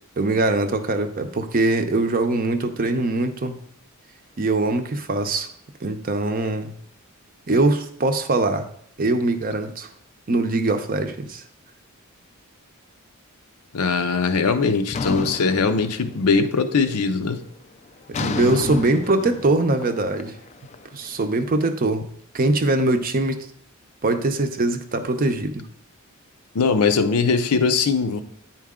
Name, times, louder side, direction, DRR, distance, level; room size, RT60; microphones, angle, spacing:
voice 1, 0.2-3.6 4.4-5.5 5.8-6.7 7.5-8.7 9.0-9.9 10.3-11.4 18.2-20.3 20.9-22.1 22.3-23.5 24.0-25.6, right 2 dB, 40° right, 7 dB, 0.6 m, -22 dB
voice 2, 13.7-17.4 26.5-28.2, left 4 dB, 90° left, 9 dB, 0.6 m, -21 dB
sound 1, 14.9-16.5 16.8-17.2 18.1-21.2, left 4 dB, 30° left, 0.3 m, -31 dB
9.3 x 4.5 x 3.6 m, 0.65 s
head